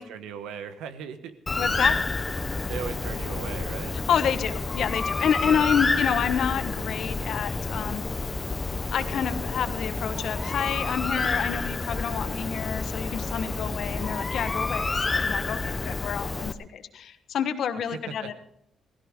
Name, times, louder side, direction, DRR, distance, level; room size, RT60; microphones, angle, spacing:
voice 1, 0.0-1.3 2.6-4.0 5.4-5.7 17.9-18.3, right 7 dB, 90° right, 10 dB, 1.2 m, -38 dB
Bird, 1.5-16.5, left 3 dB, 25° left, 0.9 m, -29 dB
voice 2, 1.6-2.0 4.1-8.0 8.9-18.3, left 8 dB, 65° left, 9 dB, 1.3 m, -28 dB
16.5 x 16.5 x 3.8 m, 0.74 s
cardioid pair, 90°, 0 cm